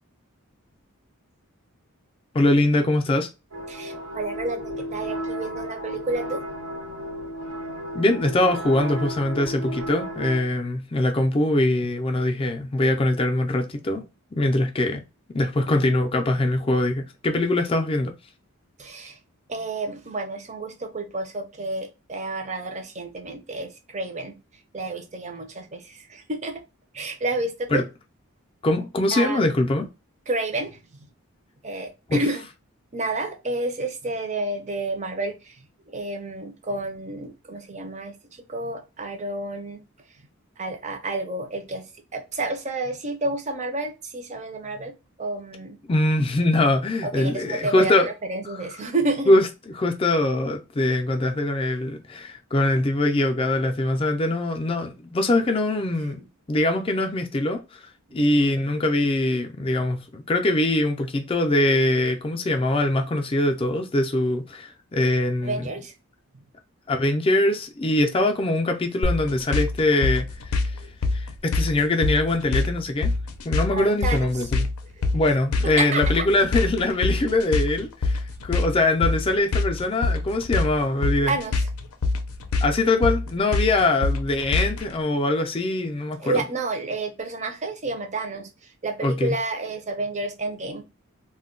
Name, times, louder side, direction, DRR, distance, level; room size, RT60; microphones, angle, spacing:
voice 1, 2.3-3.3 7.9-15.0 15.3-18.1 27.7-27.8 28.6-29.9 32.1-32.2 45.9-48.1 49.3-49.4 49.8-65.7 66.9-70.3 70.6-70.7 71.1-73.1 73.4-74.7 75.1-81.4 82.6-86.4 89.0-89.4, left 2 dB, 25° left, 0.4 m, -23 dB
sound 1, 3.5-10.4, equal, 75° right, 0.8 m, -34 dB
voice 2, 3.7-6.4 18.8-19.2 19.5-24.4 24.7-26.6 26.9-27.9 29.1-29.5 30.3-30.8 31.6-32.5 32.9-39.8 40.6-44.9 45.2-45.8 47.0-47.9 48.3-49.4 58.2-58.3 65.4-65.9 70.7-70.9 73.7-74.5 75.0-75.1 75.6-76.0 81.2-81.7 86.2-90.8, right 2 dB, 30° right, 0.5 m, -30 dB
sound 2, 69.0-84.9, left 3 dB, 80° left, 0.5 m, -25 dB
2.2 x 2.1 x 3.7 m
head